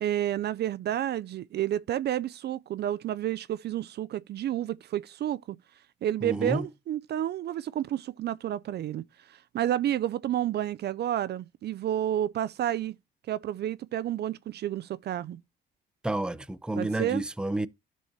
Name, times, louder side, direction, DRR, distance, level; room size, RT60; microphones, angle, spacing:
voice 1, 0.0-5.6 6.0-12.9 13.3-15.4 16.8-17.2, right 11 dB, 55° right, 0.4 m, -30 dB
voice 2, 6.2-6.7 16.0-17.7, right 1 dB, 5° right, 0.5 m, -30 dB
12.5 x 4.6 x 2.7 m
cardioid pair, 90°, 20 cm